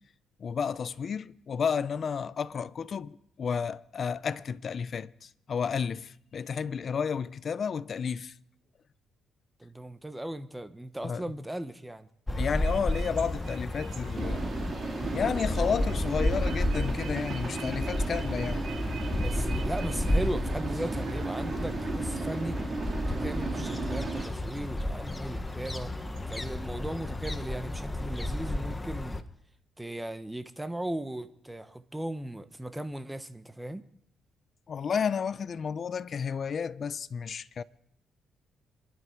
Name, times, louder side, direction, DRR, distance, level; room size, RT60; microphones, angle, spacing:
voice 1, 0.4-8.3 11.0-11.2 12.4-14.4 15.1-18.6 34.7-37.6, left 6 dB, 50° left, 0.6 m, -32 dB
voice 2, 9.6-12.1 19.2-22.6 23.0-25.9 26.3-29.2 29.8-33.8, right 1 dB, 10° right, 1.1 m, -37 dB
sound 1, 12.3-29.2, left 1 dB, 15° left, 1.1 m, -32 dB
sound 2, 12.5-26.9, right 8 dB, 80° right, 2.2 m, -49 dB
sound 3, 14.1-24.3, right 4 dB, 40° right, 2.6 m, -36 dB
27.0 x 11.5 x 4.6 m
cardioid pair, 90°, 0 cm